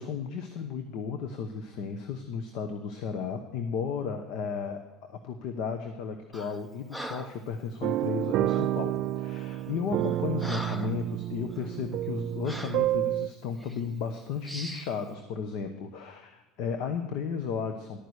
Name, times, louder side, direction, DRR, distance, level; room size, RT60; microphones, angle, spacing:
voice 1, 0.0-18.1, left 6 dB, 55° left, 7 dB, 1.0 m, -34 dB
Breathing, 6.3-6.6 6.9-7.4 8.5-8.7 9.4-9.6 10.0-11.0 11.5-11.7 12.4-12.9 13.6-13.8 14.4-14.9, equal, 5° left, 0.6 m, -41 dB
sound 1, 7.8-13.3, right 14 dB, 50° right, 0.3 m, -29 dB
12.0 x 9.5 x 4.8 m, 1.2 s
cardioid pair, 160°, 0 cm